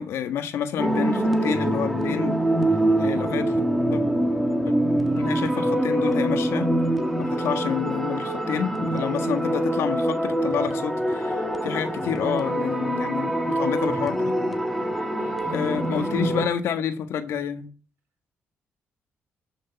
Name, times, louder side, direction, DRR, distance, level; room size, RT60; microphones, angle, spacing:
voice 1, 0.0-2.4 3.0-3.5 3.9-4.0 4.6-4.7 5.1-6.7 7.1-14.3 15.0-15.1 15.5-17.7, left 8 dB, 85° left, 1.5 m, -29 dB
sound 1, 0.8-16.5, right 1 dB, ahead, 1.6 m, -24 dB
voice 2, 2.9-3.3 15.1-16.0, right 2 dB, 55° right, 6.0 m, -46 dB
13.0 x 6.4 x 8.3 m
cardioid pair, 150°, 4 cm